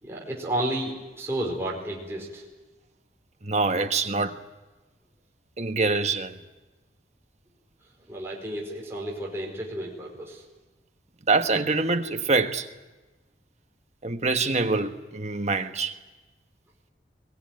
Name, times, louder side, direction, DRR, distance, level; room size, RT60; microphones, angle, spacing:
voice 1, 0.0-2.4 8.1-10.4, right 1 dB, 15° right, 4.7 m, -32 dB
voice 2, 3.4-4.4 5.6-6.4 11.2-12.7 14.0-16.0, right 3 dB, 40° right, 1.3 m, -25 dB
22.5 x 18.5 x 9.5 m
head